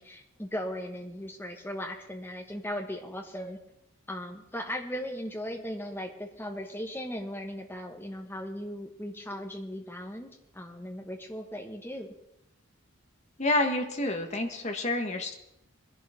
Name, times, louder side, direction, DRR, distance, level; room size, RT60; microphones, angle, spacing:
voice 1, 0.0-3.6 4.1-12.1, equal, 10° left, 2 dB, 1.4 m, -38 dB
voice 2, 13.4-15.3, left 2 dB, 30° left, 4 dB, 1.4 m, -28 dB
22.0 x 11.0 x 3.6 m, 0.85 s
head